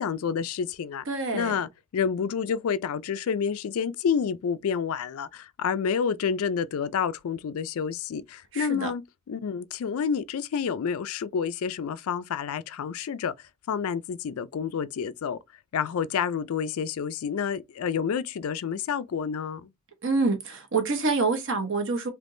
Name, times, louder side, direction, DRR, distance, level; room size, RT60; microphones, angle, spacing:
voice 1, 0.0-1.1 1.3-9.0 9.3-15.4 15.7-19.7, left 7 dB, 70° left, 0.3 m, -29 dB
voice 2, 1.1-1.5 8.5-8.9 20.0-22.1, right 3 dB, 55° right, 1.0 m, -26 dB
3.5 x 2.8 x 2.6 m
head